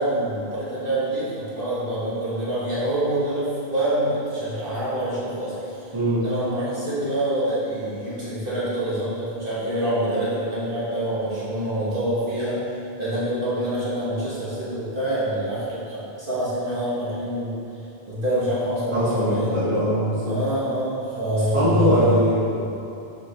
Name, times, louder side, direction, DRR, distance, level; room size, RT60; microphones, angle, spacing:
voice 1, 0.0-5.9 6.2-12.6 13.0-17.6 18.1-19.5 20.2-22.3 22.6-22.7, right 1 dB, 60° right, -10 dB, 1.7 m, -26 dB
voice 2, 18.9-20.3 21.5-22.6, equal, 30° right, -10 dB, 1.6 m, -21 dB
7.3 x 4.9 x 3.3 m, 2.8 s
omnidirectional pair, 1.0 m